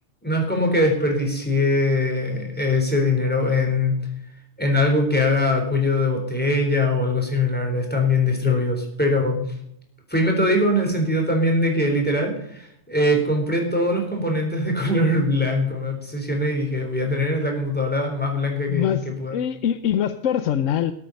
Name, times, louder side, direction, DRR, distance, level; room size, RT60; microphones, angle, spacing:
voice 1, 0.2-4.0 4.6-9.4 10.1-19.4, left 1 dB, 5° left, 1 dB, 3.8 m, -22 dB
voice 2, 18.7-20.9, left 9 dB, 85° left, 12 dB, 1.1 m, -24 dB
20.0 x 8.6 x 5.3 m, 0.73 s
omnidirectional pair, 1.3 m